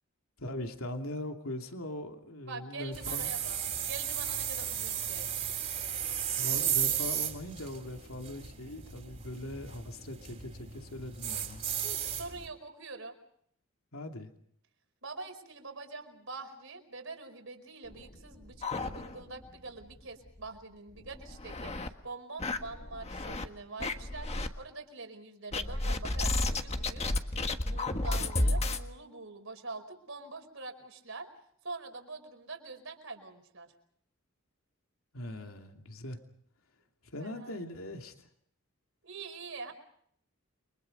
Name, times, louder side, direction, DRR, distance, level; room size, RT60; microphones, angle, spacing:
voice 1, 0.4-3.3 6.4-11.6 13.9-14.3 35.1-36.2 37.0-38.3, left 1 dB, 85° left, 3 dB, 2.8 m, -40 dB
voice 2, 2.5-3.6 3.9-5.3 11.8-13.2 15.0-27.0 27.6-31.3 31.6-33.7 37.2-37.6 39.0-39.7, right 3 dB, 65° right, 6 dB, 5.0 m, -44 dB
sound 1, 2.9-12.5, right 9 dB, 35° right, 3.6 m, -35 dB
sound 2, 17.9-19.5 19.8-19.9 20.3-20.4 21.0-21.9 22.4-23.5 23.8-24.5 25.5-28.8, left 2 dB, 30° left, 1.5 m, -32 dB
30.0 x 24.5 x 5.4 m, 0.66 s
head